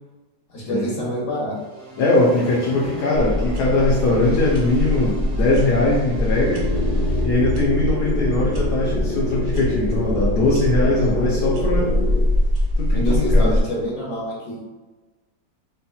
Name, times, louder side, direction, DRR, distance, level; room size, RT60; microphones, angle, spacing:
voice 1, 0.5-1.5 11.0-11.1 12.9-14.6, equal, 45° left, -5 dB, 1.5 m, -27 dB
sound 1, 1.5-7.2, right 1 dB, 40° right, 1.5 m, -35 dB
voice 2, 2.0-6.7 7.2-12.0 12.8-13.6, left 2 dB, 75° left, -6 dB, 1.2 m, -20 dB
sound 2, 3.1-13.6, left 1 dB, 70° right, 0.5 m, -23 dB
sound 3, 6.3-12.2, left 1 dB, 90° right, 2.3 m, -27 dB
4.3 x 2.9 x 2.3 m, 1.2 s
omnidirectional pair, 1.8 m